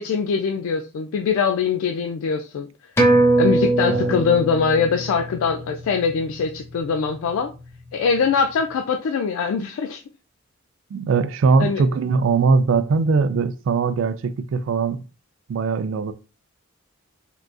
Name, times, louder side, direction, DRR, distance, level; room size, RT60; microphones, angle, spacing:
voice 1, 0.0-2.7 3.4-7.5 7.9-10.0 11.6-11.8, left 5 dB, 80° left, 0.3 m, -22 dB
sound 1, 3.0-7.9 8.3-8.4, right 2 dB, 10° left, 0.4 m, -22 dB
voice 2, 3.9-4.3 10.9-15.0 15.5-16.1, right 4 dB, 60° right, 0.3 m, -21 dB
3.7 x 2.3 x 2.4 m
head